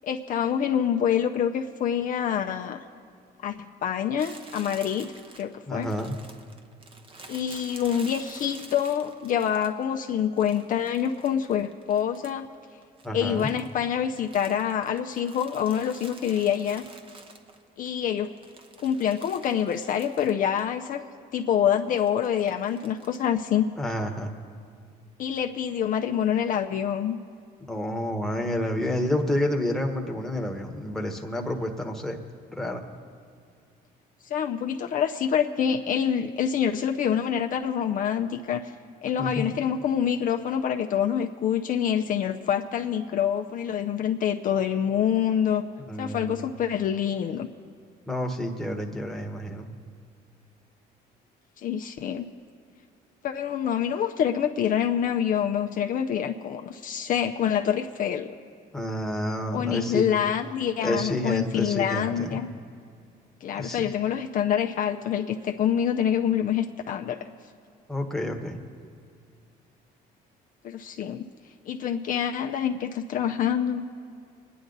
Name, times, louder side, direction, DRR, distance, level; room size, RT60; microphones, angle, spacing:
voice 1, 0.0-2.8 3.4-5.9 7.3-12.5 13.1-16.8 17.8-18.3 18.8-21.0 21.3-23.7 25.2-27.2 34.3-38.7 39.0-45.6 46.0-47.5 51.6-52.3 53.2-58.3 59.5-62.5 63.4-67.2 70.6-71.3 71.7-73.8, left 9 dB, 55° left, 5 dB, 0.6 m, -26 dB
Crumpling crinkling, 4.2-9.9 10.4-12.5 12.8-17.9 18.2-20.7 20.9-21.0 21.9-23.3, right 3 dB, 30° right, 1.0 m, -49 dB
voice 2, 5.7-6.2 13.0-13.5 23.8-24.3 27.7-32.2 32.5-32.8 39.2-39.4 45.9-46.5 48.1-49.7 58.7-60.1 60.8-62.4 63.5-63.9 67.9-68.6, left 1 dB, ahead, 1 dB, 1.3 m, -29 dB
23.0 x 10.0 x 4.0 m, 2.3 s
cardioid pair, 110°, 17 cm